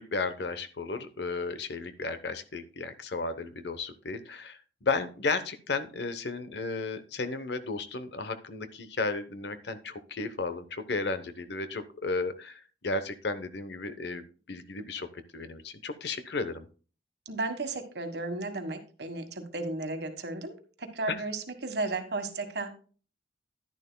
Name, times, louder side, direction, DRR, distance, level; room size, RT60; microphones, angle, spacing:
voice 1, 0.0-15.1 15.3-16.6 21.1-21.2, left 3 dB, 65° left, 11 dB, 0.9 m, -34 dB
voice 2, 17.2-22.7, right 2 dB, 60° right, 7 dB, 1.5 m, -34 dB
11.0 x 10.5 x 2.2 m, 0.38 s
head